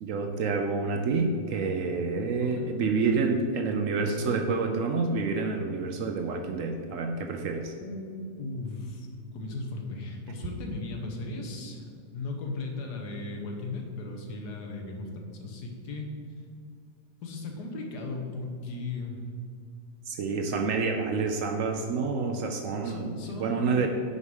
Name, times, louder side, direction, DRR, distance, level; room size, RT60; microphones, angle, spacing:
voice 1, 0.0-7.7 20.1-23.9, right 4 dB, 70° right, 5 dB, 0.7 m, -28 dB
voice 2, 2.4-2.7 7.8-9.1 9.3-11.8 12.1-16.1 17.2-19.2 22.8-23.9, left 3 dB, 70° left, 2 dB, 1.5 m, -36 dB
6.3 x 4.8 x 5.3 m, 2.2 s
omnidirectional pair, 1.8 m